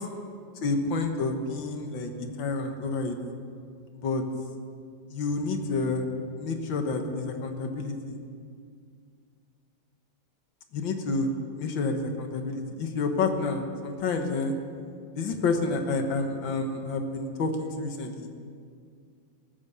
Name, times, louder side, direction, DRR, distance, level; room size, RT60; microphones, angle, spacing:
voice 1, 0.6-3.2 4.0-4.2 5.1-6.1 6.4-8.2 10.7-11.3 11.6-14.5 15.2-18.3, left 3 dB, 70° left, 5 dB, 2.0 m, -29 dB
18.0 x 9.5 x 6.9 m, 2.3 s
omnidirectional pair, 2.2 m